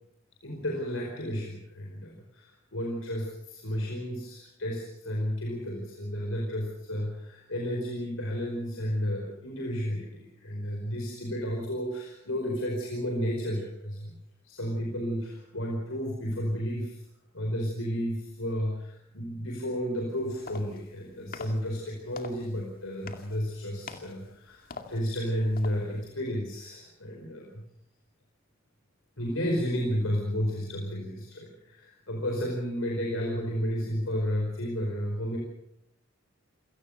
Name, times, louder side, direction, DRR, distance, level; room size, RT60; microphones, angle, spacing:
voice 1, 0.4-14.1 14.4-17.0 17.3-27.6 29.2-35.4, equal, 90° left, 0 dB, 5.0 m, -32 dB
sound 1, 20.1-26.2, left 4 dB, 50° left, 2.3 m, -47 dB
28.5 x 18.0 x 6.7 m, 0.78 s
head